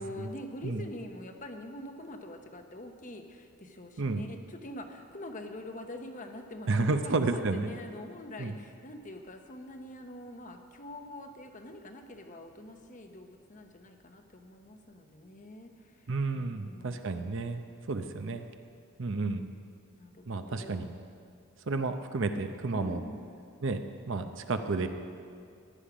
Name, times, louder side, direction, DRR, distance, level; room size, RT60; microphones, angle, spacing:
voice 1, 0.0-17.2 19.9-20.9 22.7-23.4, left 1 dB, 35° left, 5 dB, 0.9 m, -45 dB
voice 2, 4.0-4.3 6.7-7.7 8.4-8.6 16.1-18.5 19.0-19.5 20.3-20.9 21.7-23.0 23.6-24.9, right 3 dB, 55° right, 7 dB, 0.7 m, -31 dB
15.5 x 10.5 x 5.0 m, 2.3 s
head